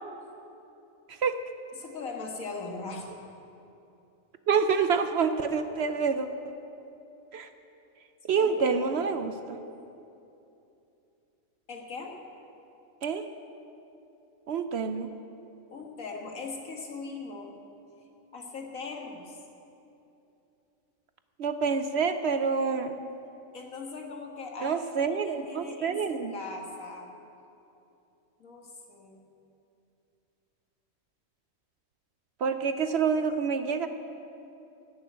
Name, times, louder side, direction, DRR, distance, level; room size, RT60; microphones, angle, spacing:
voice 1, 1.1-1.4 4.5-6.3 7.3-7.5 8.2-9.6 13.0-13.2 14.5-15.1 21.4-23.0 24.6-26.3 32.4-33.9, right 5 dB, 60° right, 9 dB, 0.8 m, -27 dB
voice 2, 1.7-3.1 8.3-9.1 11.7-12.1 15.7-17.5 18.3-19.4 23.5-27.1 28.4-29.2, left 4 dB, 80° left, 1 dB, 2.1 m, -40 dB
17.5 x 6.9 x 8.8 m, 2.8 s
omnidirectional pair, 1.4 m